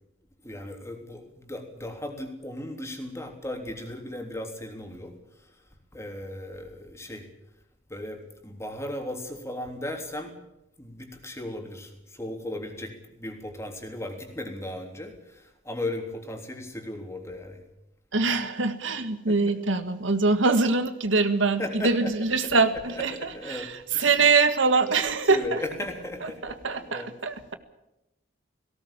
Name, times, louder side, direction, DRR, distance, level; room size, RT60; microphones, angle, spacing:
voice 1, 0.4-5.1 5.4-5.5 5.9-7.3 7.9-10.3 10.8-17.6 19.3-19.5 21.6-24.2 25.2-27.1, left 1 dB, 15° left, 3 dB, 3.4 m, -37 dB
voice 2, 18.1-25.6 26.2-27.6, right 4 dB, 75° right, 10 dB, 1.6 m, -24 dB
18.0 x 17.5 x 8.8 m, 0.88 s
head